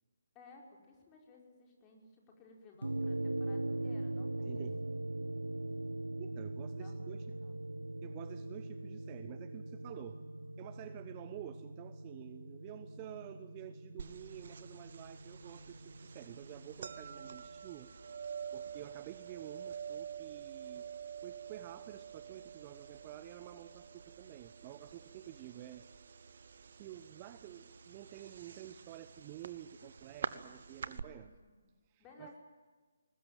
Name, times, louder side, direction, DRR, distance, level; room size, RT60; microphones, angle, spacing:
voice 1, 0.4-4.7 6.8-7.6 28.6-28.7 30.7-31.5 32.0-32.4, left 3 dB, 20° left, 0 dB, 5.2 m, -58 dB
sound 1, 2.8-17.4, right 2 dB, 85° right, 0.8 m, -41 dB
voice 2, 4.5-4.8 6.2-7.3 8.0-10.2 10.6-17.9 18.5-26.1 26.7-31.3 31.9-32.4, right 13 dB, 25° right, 11 dB, 1.0 m, -50 dB
sound 2, 14.0-31.0, right 7 dB, 55° right, 1.2 m, -47 dB
21.5 x 19.5 x 9.3 m, 1.4 s
figure-of-eight pair, 145°, 0 cm